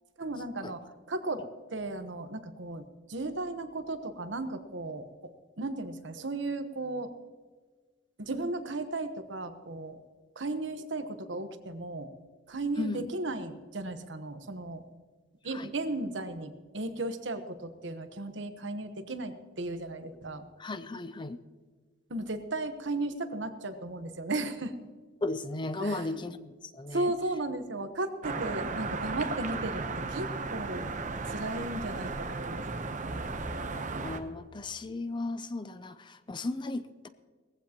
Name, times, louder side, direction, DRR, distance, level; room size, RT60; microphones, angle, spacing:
voice 1, 0.2-0.8 1.1-1.4 1.7-5.3 5.6-7.1 8.2-10.0 10.4-12.1 12.5-14.8 15.4-20.4 22.1-24.8 25.8-26.3 26.9-29.8 30.1-30.9 31.3-33.3, right 2 dB, 65° right, 9 dB, 1.1 m, -35 dB
voice 2, 20.6-21.4 25.2-27.1 34.0-37.1, left 2 dB, 25° left, 12 dB, 0.5 m, -35 dB
sound 1, 28.2-34.2, right 3 dB, 40° right, 0.9 m, -35 dB
19.5 x 15.0 x 3.0 m, 1.5 s
head